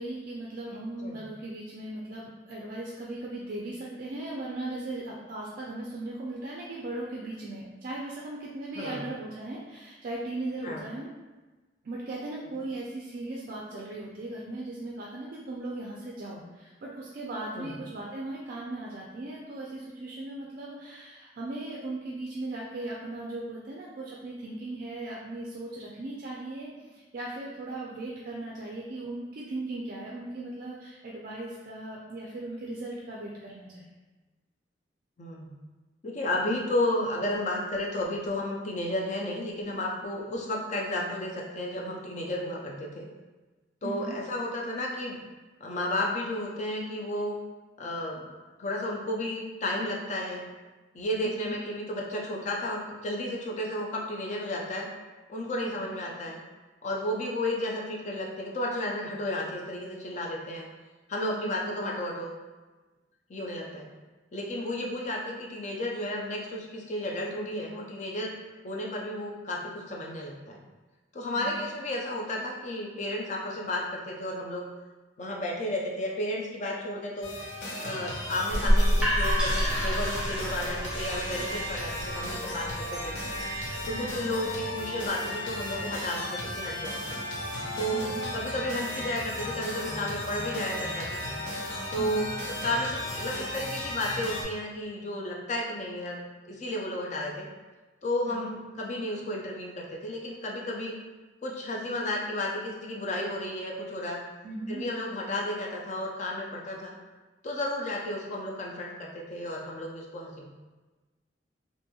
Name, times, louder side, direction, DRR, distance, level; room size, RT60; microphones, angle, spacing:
voice 1, 0.0-11.1 11.8-33.9 43.8-44.2 51.2-51.6 55.6-56.0 61.4-61.7 71.4-71.7 83.9-84.3 87.9-88.2 92.0-92.3 98.3-98.5 104.4-104.8, right 2 dB, 50° right, -4 dB, 0.3 m, -38 dB
voice 2, 8.8-9.1 10.6-10.9 17.6-17.7 35.2-35.5 36.0-43.1 43.8-45.2 45.6-47.3 47.8-48.3 48.6-50.5 50.9-54.9 55.3-56.4 56.8-60.7 61.1-62.4 63.3-63.9 64.3-68.3 68.6-70.6 71.1-74.7 75.2-77.3 77.8-83.2 83.9-87.0 87.7-91.2 91.9-92.3 92.6-97.5 98.0-101.0 101.4-104.2 104.7-106.9 107.4-110.5, left 1 dB, 40° left, -1 dB, 0.5 m, -32 dB
sound 1, 77.2-94.4, left 1 dB, 80° left, 0.7 m, -35 dB
sound 2, 78.5-84.3, equal, 5° right, 0.6 m, -28 dB
2.8 x 2.5 x 2.2 m, 1.2 s
head